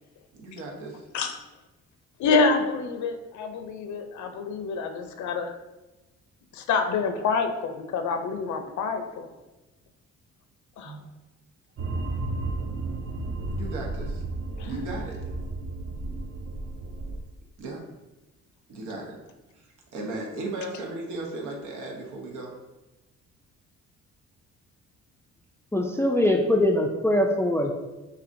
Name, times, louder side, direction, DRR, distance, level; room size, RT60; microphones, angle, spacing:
voice 1, 0.3-1.0 10.8-11.0 13.4-14.2 14.6-15.2 17.6-17.8 18.7-19.2 19.6-19.7 19.9-22.5, right 2 dB, 85° right, 0 dB, 1.0 m, -36 dB
voice 2, 2.2-5.6 6.5-9.3 10.8-11.0 14.6-14.7, left 4 dB, 70° left, 6 dB, 0.6 m, -27 dB
sound 1, 11.8-17.2, right 2 dB, 45° right, 0.5 m, -33 dB
voice 3, 25.7-27.7, left 1 dB, 10° left, 3 dB, 0.3 m, -22 dB
5.8 x 2.8 x 2.6 m, 1.1 s
cardioid pair, 90°, 30 cm